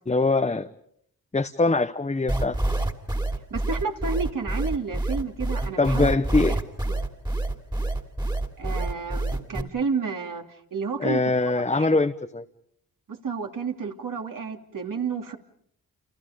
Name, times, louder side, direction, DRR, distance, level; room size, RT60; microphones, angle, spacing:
voice 1, 0.1-0.7 1.3-2.6 5.8-6.6 11.0-12.4, left 3 dB, 20° left, 1.0 m, -23 dB
sound 1, 2.3-9.6, right 2 dB, 10° right, 2.8 m, -26 dB
voice 2, 3.5-6.1 6.5-6.6 6.9-7.0 8.6-11.2 11.5-12.0 13.1-15.4, right 5 dB, 60° right, 3.1 m, -31 dB
30.0 x 29.0 x 5.2 m
cardioid pair, 85°, 37 cm